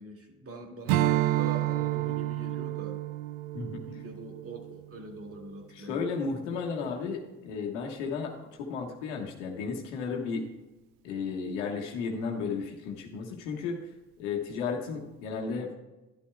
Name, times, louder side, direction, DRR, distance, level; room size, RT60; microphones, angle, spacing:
voice 1, 0.0-3.0 3.9-6.1, right 2 dB, 40° right, 2 dB, 2.3 m, -43 dB
Strum, 0.9-5.6, right 14 dB, 70° right, 0.5 m, -30 dB
voice 2, 5.7-8.3 8.7-10.5 11.0-13.8 14.2-15.7, left 5 dB, 85° left, 1 dB, 1.4 m, -33 dB
11.5 x 11.5 x 2.3 m, 1.1 s
hypercardioid pair, 55°, 35 cm